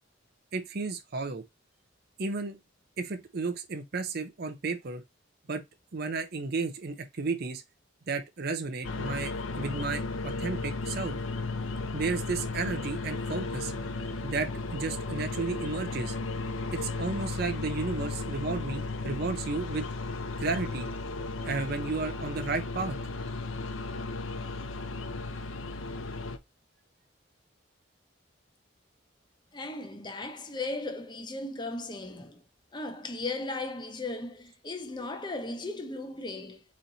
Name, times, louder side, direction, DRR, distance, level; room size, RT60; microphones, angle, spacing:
voice 1, 0.5-1.4 2.2-2.6 3.0-5.0 5.5-5.6 5.9-7.6 8.1-11.2 11.9-13.7 14.2-16.2 16.7-19.9 20.4-20.9 21.5-23.0, right 4 dB, 50° right, 0.6 m, -33 dB
sound 1, 8.8-26.4, left 3 dB, 90° left, 0.7 m, -35 dB
voice 2, 29.5-32.4 32.7-36.6, left 2 dB, 25° left, 0.8 m, -36 dB
4.1 x 3.1 x 3.9 m
head